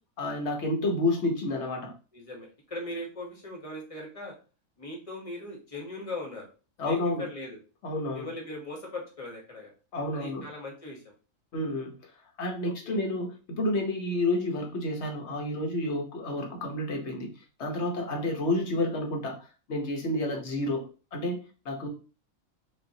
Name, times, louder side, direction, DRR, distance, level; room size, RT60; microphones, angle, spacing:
voice 1, 0.2-1.9 6.8-7.3 7.8-8.3 9.9-10.4 11.5-11.9 12.4-17.3 17.6-19.4 19.7-20.8 21.1-21.9, left 1 dB, 60° left, 1 dB, 1.1 m, -30 dB
voice 2, 2.1-4.3 4.8-6.5 6.8-7.6 8.1-9.7 10.1-11.1 12.6-13.0, left 1 dB, 30° left, 0 dB, 1.1 m, -39 dB
5.2 x 2.5 x 2.7 m, 0.35 s
omnidirectional pair, 1.4 m